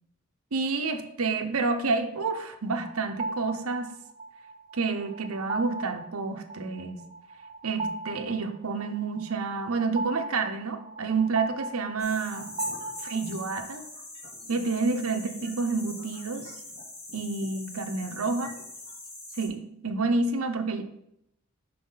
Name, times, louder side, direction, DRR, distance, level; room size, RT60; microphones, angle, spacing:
voice 1, 0.5-3.9 4.7-7.0 7.6-12.5 13.1-13.8 14.5-16.5 17.1-18.5 19.4-20.8, right 4 dB, 75° right, 6 dB, 0.8 m, -29 dB
sound 1, 2.8-13.6, right 2 dB, 30° right, 0.4 m, -38 dB
sound 2, 12.0-19.5, left 2 dB, 30° left, 2.8 m, -42 dB
11.0 x 4.2 x 4.0 m, 0.77 s
head